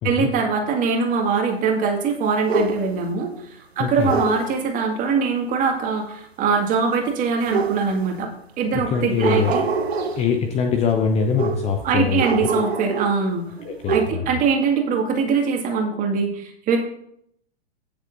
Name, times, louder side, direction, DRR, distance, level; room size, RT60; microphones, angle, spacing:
voice 1, 0.0-8.3 8.6-9.6 11.8-13.4 13.9-16.8, right 5 dB, 25° right, 2 dB, 2.1 m, -22 dB
sound 1, 2.5-3.1 4.1-4.5 7.5-8.2 9.1-10.3 11.4-11.8 12.2-13.3 13.6-14.1, right 4 dB, 75° right, 1.0 m, -25 dB
voice 2, 3.8-4.1 8.7-9.5 10.2-12.5 13.6-14.3, left 6 dB, 20° left, 4 dB, 0.7 m, -23 dB
16.5 x 6.8 x 2.7 m, 0.70 s
figure-of-eight pair, 110°, 32 cm